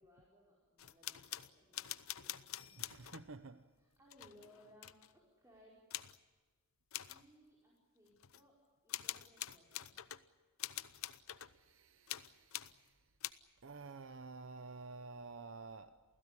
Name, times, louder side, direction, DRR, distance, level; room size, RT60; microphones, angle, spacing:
voice 1, 0.0-1.9 2.2-2.8 3.8-5.9 7.0-9.9, left 1 dB, 15° right, 5.1 m, -65 dB
sound 1, 0.8-3.3 4.1-5.1 5.9-6.2 6.9-7.2 8.2-8.4 8.9-10.2 10.6-11.6 12.1-12.8 13.2-13.3, left 13 dB, 80° left, 0.8 m, -45 dB
voice 2, 2.8-3.7 11.4-13.1 13.6-16.0, right 3 dB, 65° right, 0.8 m, -51 dB
28.0 x 16.5 x 9.9 m
head